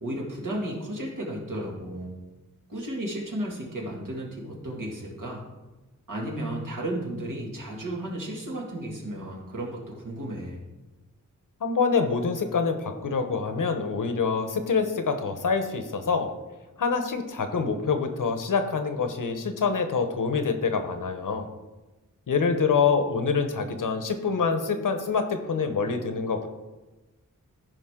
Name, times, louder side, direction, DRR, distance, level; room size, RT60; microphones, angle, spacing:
voice 1, 0.0-2.2 2.7-5.4 6.1-10.6, right 1 dB, 70° right, -3 dB, 2.4 m, -33 dB
voice 2, 11.6-16.3 16.8-21.5 22.3-26.5, left 5 dB, 70° left, 7 dB, 1.0 m, -26 dB
14.5 x 5.0 x 3.8 m, 1.1 s
wide cardioid pair, 75°, 33 cm